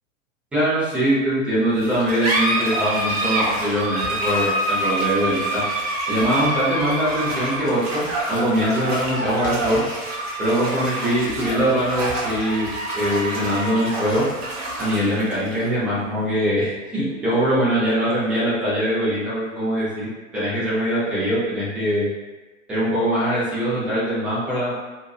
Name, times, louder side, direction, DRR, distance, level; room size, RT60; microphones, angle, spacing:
voice 1, 0.5-5.6 6.1-9.8 10.4-12.7 12.9-14.2 14.8-20.1 20.3-22.1 22.7-24.7, equal, 5° right, -12 dB, 0.3 m, -22 dB
sound 1, 1.8-18.8, right 1 dB, 50° right, 0.8 m, -27 dB
2.7 x 2.2 x 2.2 m, 1.2 s
figure-of-eight pair, 95°, 40 cm